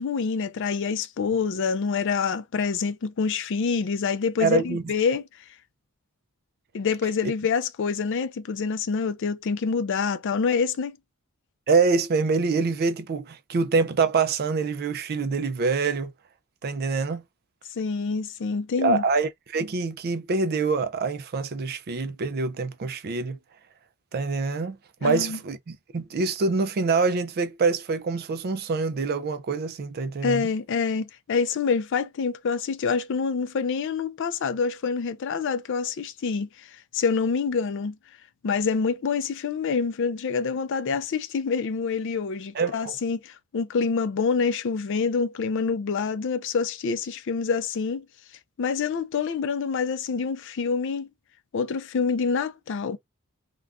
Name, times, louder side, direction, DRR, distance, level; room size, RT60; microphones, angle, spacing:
voice 1, 0.0-5.2 6.7-11.0 17.8-19.0 25.0-25.4 30.2-36.7 36.9-37.9 38.4-48.0 48.6-51.1 51.5-53.0, left 5 dB, 55° left, 0.4 m, -26 dB
voice 2, 4.4-4.8 11.7-16.1 16.6-17.2 18.8-23.4 24.1-30.5 42.5-42.9, right 4 dB, 45° right, 0.4 m, -25 dB
2.4 x 2.3 x 3.4 m
head